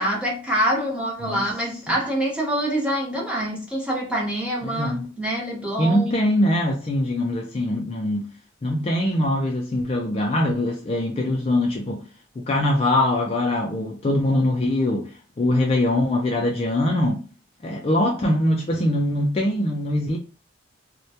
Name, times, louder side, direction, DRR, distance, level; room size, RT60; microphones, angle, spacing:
voice 1, 0.0-6.2, right 1 dB, 5° right, 0.7 m, -25 dB
voice 2, 4.6-5.0 5.8-8.3 8.6-12.0 12.4-17.2 17.6-20.2, left 1 dB, 30° left, 0.3 m, -22 dB
2.1 x 2.1 x 2.7 m
head